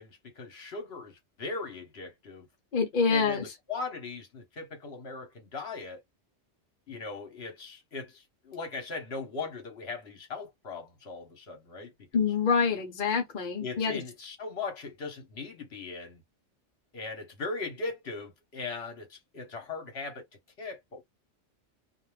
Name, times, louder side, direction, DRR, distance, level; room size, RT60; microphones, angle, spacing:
voice 1, 0.0-2.5 3.1-6.0 6.9-12.3 13.6-16.2 16.9-20.2 20.6-21.0, left 3 dB, 65° left, 1.2 m, -39 dB
voice 2, 2.7-3.4 12.1-14.0, left 5 dB, 50° left, 0.8 m, -26 dB
2.5 x 2.1 x 3.2 m
omnidirectional pair, 1.2 m